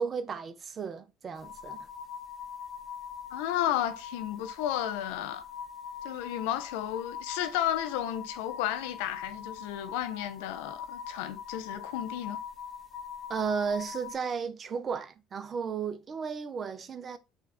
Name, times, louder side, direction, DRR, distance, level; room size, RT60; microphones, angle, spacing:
voice 1, 0.0-1.9 13.3-17.2, right 6 dB, 40° right, 0.6 m, -34 dB
sound 1, 1.3-14.2, left 7 dB, 40° left, 0.8 m, -42 dB
voice 2, 3.3-5.4 6.0-12.4, left 12 dB, 85° left, 0.5 m, -33 dB
4.5 x 2.4 x 4.0 m
supercardioid pair, 75°, 0 cm